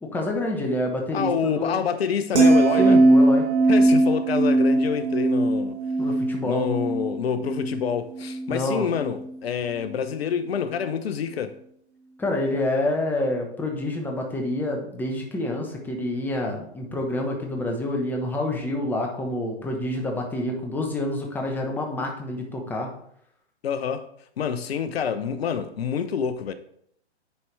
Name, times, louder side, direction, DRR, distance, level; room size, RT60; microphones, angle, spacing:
voice 1, 0.0-1.7 2.8-3.5 6.0-6.7 8.5-8.9 12.2-22.9, left 1 dB, 5° left, 1.0 m, -27 dB
voice 2, 1.1-3.0 3.7-5.8 6.4-11.6 23.6-24.1 24.4-26.5, left 7 dB, 65° left, 0.7 m, -27 dB
sound 1, 2.3-8.6 9.0-9.3, right 2 dB, 85° right, 1.6 m, -20 dB
9.6 x 4.5 x 3.2 m
hypercardioid pair, 130°, 33 cm